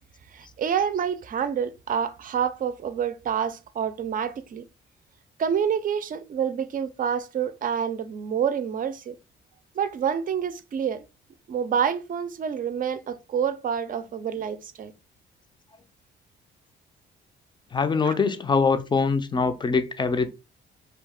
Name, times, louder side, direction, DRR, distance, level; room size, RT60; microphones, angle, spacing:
voice 1, 0.3-4.7 5.4-9.1 9.8-11.0 11.5-14.9 18.0-18.2, right 8 dB, 45° right, 0.5 m, -27 dB
voice 2, 17.7-20.3, left 4 dB, 25° left, 0.5 m, -23 dB
2.8 x 2.3 x 3.5 m
cardioid pair, 90°, 20 cm